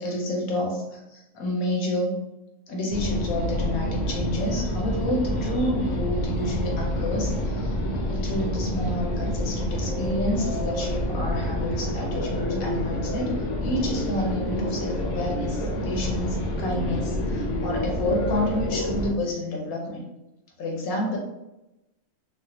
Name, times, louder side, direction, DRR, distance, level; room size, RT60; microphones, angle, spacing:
voice 1, 0.0-2.2 2.7-7.7 8.0-20.0 20.6-21.2, left 1 dB, 80° left, 0 dB, 1.2 m, -29 dB
sound 1, 2.9-19.1, equal, 65° left, 0.9 m, -28 dB
3.2 x 2.2 x 2.7 m, 0.95 s
omnidirectional pair, 1.4 m